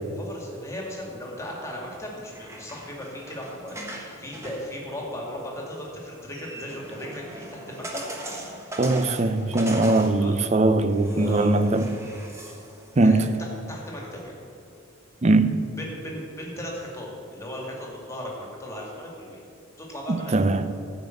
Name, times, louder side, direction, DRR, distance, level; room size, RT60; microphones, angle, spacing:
voice 1, 0.2-8.0 10.2-10.4 11.0-11.5 13.0-13.3 13.7-14.3 15.8-19.4 19.8-20.6, left 1 dB, 15° left, 2.0 m, -37 dB
sound 1, 2.1-14.3, right 1 dB, 15° right, 1.1 m, -41 dB
voice 2, 8.8-12.0 13.0-13.3 15.2-15.6 20.1-20.7, right 2 dB, 30° right, 0.5 m, -21 dB
14.5 x 5.2 x 7.7 m
head